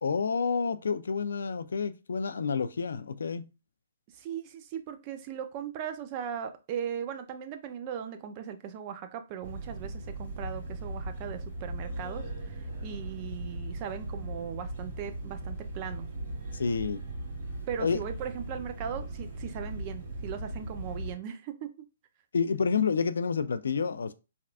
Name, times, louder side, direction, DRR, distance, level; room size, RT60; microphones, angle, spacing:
voice 1, 0.0-3.5 16.5-17.0 17.8-18.0 22.3-24.1, left 5 dB, 80° left, 0.3 m, -29 dB
voice 2, 4.1-16.1 17.7-21.7, right 8 dB, 30° right, 0.4 m, -38 dB
sound 1, 9.4-21.1, right 2 dB, 45° right, 1.7 m, -38 dB
3.4 x 2.3 x 2.4 m
hypercardioid pair, 150°, 0 cm